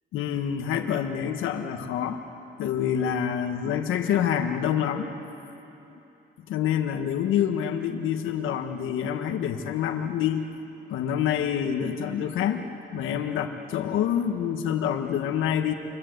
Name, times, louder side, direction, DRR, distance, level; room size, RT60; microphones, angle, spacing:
voice 1, 0.1-2.2 2.6-5.1 6.5-10.5 10.9-12.6 12.9-15.7, left 9 dB, 90° left, 5 dB, 1.5 m, -27 dB
29.5 x 23.5 x 8.0 m, 2.9 s
cardioid pair, 90°, 20 cm